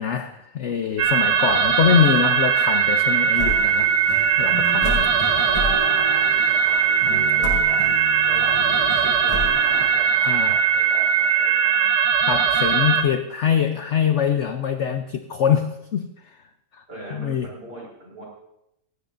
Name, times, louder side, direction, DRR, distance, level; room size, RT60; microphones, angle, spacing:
voice 1, 0.0-3.9 4.4-5.1 7.0-7.2 10.2-10.6 12.3-16.4 16.7-16.8 17.1-17.5, left 8 dB, 60° left, 8 dB, 0.8 m, -23 dB
sound 1, 1.0-13.0, right 7 dB, 75° right, 1.7 m, -20 dB
sound 2, 3.3-9.9, left 1 dB, 20° left, 5.9 m, -31 dB
voice 2, 5.3-7.8 8.3-10.2 10.5-11.9 16.9-18.2, right 1 dB, 35° right, -3 dB, 5.6 m, -40 dB
17.5 x 17.0 x 2.6 m, 0.82 s
omnidirectional pair, 1.8 m